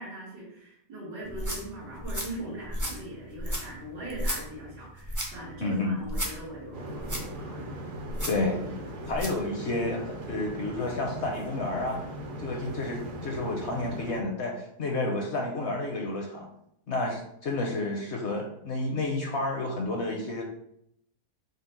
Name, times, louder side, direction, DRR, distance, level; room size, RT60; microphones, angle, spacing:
voice 1, 0.0-7.9 8.3-8.9 10.2-10.4, right 1 dB, 90° right, -8 dB, 2.1 m, -41 dB
sound 1, 1.2-9.4, equal, 30° right, 0.3 m, -35 dB
voice 2, 5.6-6.0 8.3-8.6 9.1-12.0 12.4-16.5 16.9-20.4, left 2 dB, 60° left, 1 dB, 0.7 m, -30 dB
sound 2, 6.7-14.2, right 1 dB, 65° right, 1.0 m, -39 dB
5.1 x 2.0 x 4.3 m, 0.74 s
omnidirectional pair, 1.7 m